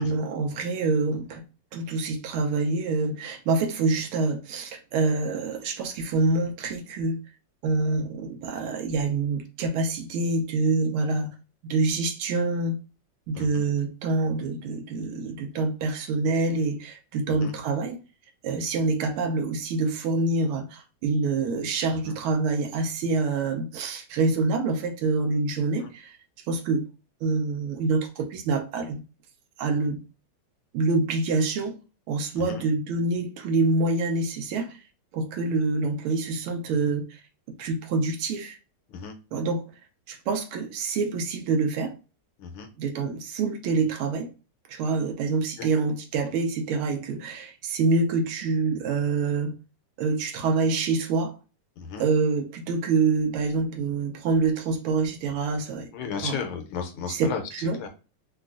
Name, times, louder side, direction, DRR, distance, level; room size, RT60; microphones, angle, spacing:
voice 1, 0.0-1.4 1.7-7.2 7.6-11.3 11.6-12.7 13.3-18.0 18.4-26.2 26.5-26.8 27.2-29.0 29.6-30.0 30.7-31.8 32.1-34.8 35.1-37.2 37.6-38.6 39.3-39.6 40.1-41.9 42.8-44.3 44.7-49.5 50.0-51.4 52.0-55.9 56.2-56.4 57.1-57.9, right 3 dB, 80° right, 1.5 m, -26 dB
voice 2, 13.3-13.7 17.4-17.5 22.0-22.1 25.8-25.9 32.3-32.6 38.9-39.1 42.4-42.7 45.6-45.7 51.8-52.0 55.9-57.4 57.8-57.9, left 6 dB, 80° left, 1.5 m, -34 dB
4.1 x 2.3 x 2.4 m
omnidirectional pair, 2.4 m